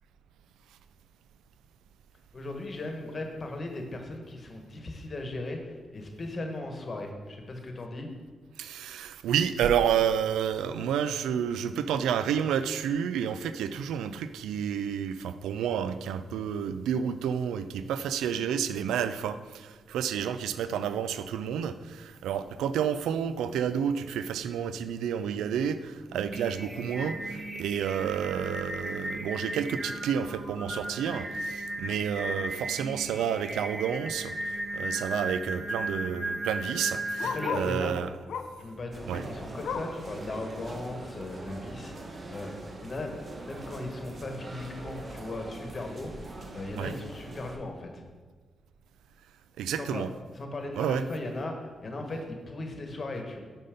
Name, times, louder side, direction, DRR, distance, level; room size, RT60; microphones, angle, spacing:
voice 1, 2.3-8.1 37.3-38.0 38.6-42.5 42.8-43.1 43.4-46.1 46.5-48.0 49.8-50.0 50.3-53.4, left 2 dB, 45° left, 3 dB, 1.4 m, -37 dB
voice 2, 8.6-38.1 39.1-39.3 46.7-46.9 49.6-50.1 50.8-51.0, right 8 dB, 85° right, 12 dB, 0.3 m, -30 dB
Singing, 26.1-37.8, right 1 dB, 25° right, 1.6 m, -36 dB
Bark, 34.7-34.8 34.9-37.8 38.3-38.7 39.1-40.1 40.5-40.6 41.0-41.1 41.8-41.9, left 6 dB, 75° left, 0.5 m, -37 dB
sound 1, 38.9-47.6, right 2 dB, 50° right, 1.1 m, -43 dB
5.6 x 5.3 x 5.1 m, 1.5 s
supercardioid pair, 50°, 0 cm